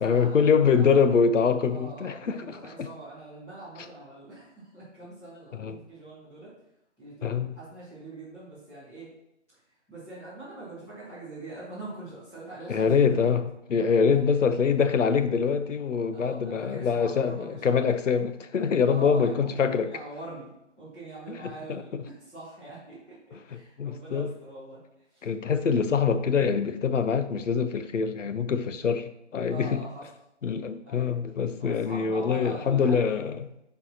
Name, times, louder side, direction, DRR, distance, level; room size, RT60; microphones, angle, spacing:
voice 1, 0.0-2.9 3.8-3.9 5.5-5.8 7.2-7.5 12.7-19.9 21.3-21.8 23.3-24.3 25.2-29.8 30.4-33.5, left 6 dB, 90° left, 0.7 m, -25 dB
voice 2, 0.6-1.0 1.7-6.5 7.0-9.1 9.9-13.1 14.1-14.4 16.1-17.9 18.9-20.5 20.8-24.8 25.1-25.3 29.4-30.0 30.8-31.1 31.6-33.1, right 2 dB, 5° left, 1.2 m, -43 dB
7.7 x 4.7 x 2.8 m
hypercardioid pair, 170°, 37 cm